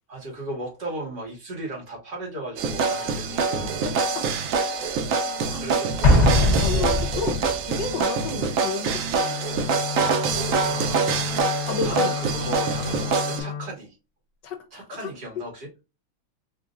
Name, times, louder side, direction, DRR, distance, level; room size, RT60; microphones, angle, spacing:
voice 1, 0.1-3.8 5.4-6.2 7.8-7.9 10.2-11.5 11.8-14.0 14.7-15.7, right 1 dB, 60° right, 2.7 m, -36 dB
sound 1, 2.6-13.4, right 4 dB, 85° right, 0.7 m, -25 dB
voice 2, 3.6-4.3 5.5-9.4 11.7-12.1 14.4-15.1, left 6 dB, 70° left, 1.4 m, -32 dB
Explosion, 6.0-7.7, left 2 dB, 30° left, 0.9 m, -20 dB
Wind instrument woodwind instrument, 9.2-13.7, left 7 dB, 85° left, 0.7 m, -32 dB
4.6 x 2.9 x 2.4 m
omnidirectional pair, 2.1 m